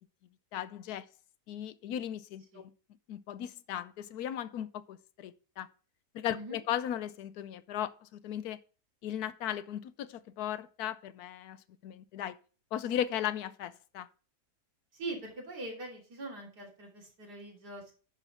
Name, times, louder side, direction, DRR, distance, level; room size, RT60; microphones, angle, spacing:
voice 1, 0.5-1.1 1.5-2.7 3.1-5.7 6.1-8.6 9.0-11.6 11.8-12.4 12.7-14.1, left 10 dB, 75° left, 1.1 m, -37 dB
voice 2, 14.9-17.9, right 2 dB, 85° right, 3.7 m, -42 dB
9.9 x 6.3 x 4.2 m
omnidirectional pair, 1.7 m